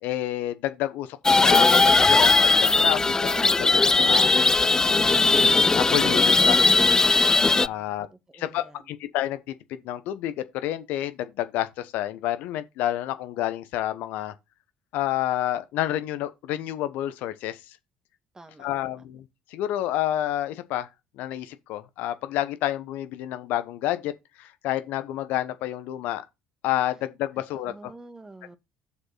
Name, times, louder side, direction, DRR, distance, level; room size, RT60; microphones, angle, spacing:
voice 1, 0.0-3.1 3.4-4.3 5.0-6.6 7.6-8.1 8.3-14.3 14.9-17.8 18.6-20.9 21.2-24.1 24.4-26.2 26.6-27.9, left 13 dB, 65° left, 1.0 m, -29 dB
sound 1, 1.2-7.7, left 3 dB, 20° left, 0.4 m, -19 dB
voice 2, 4.0-4.5 7.3-7.9 8.3-8.8 18.3-18.9 27.6-28.6, right 2 dB, 20° right, 1.6 m, -48 dB
7.2 x 6.9 x 4.0 m
figure-of-eight pair, 55°, 3 cm